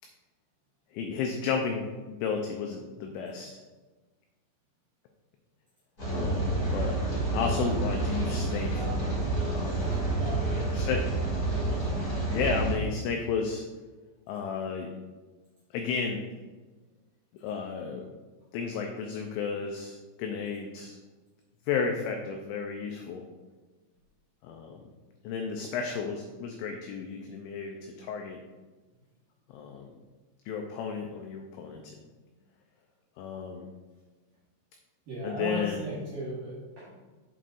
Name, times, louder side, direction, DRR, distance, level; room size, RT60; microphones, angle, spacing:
voice 1, 0.9-3.5 6.1-7.0 7.3-8.9 9.5-10.0 10.7-11.0 12.0-13.6 14.3-14.9 15.7-16.2 17.4-18.1 18.5-21.0 21.7-23.2 24.4-24.8 25.2-28.4 29.5-29.9 30.5-31.8 33.2-33.7 35.2-35.8, left 5 dB, 90° left, 3 dB, 2.6 m, -33 dB
Rain, 6.0-12.7, right 2 dB, 40° left, 1.3 m, -29 dB
voice 2, 10.1-10.7 35.1-37.0, equal, 65° right, -9 dB, 2.3 m, -36 dB
8.0 x 7.4 x 2.6 m, 1.3 s
omnidirectional pair, 6.0 m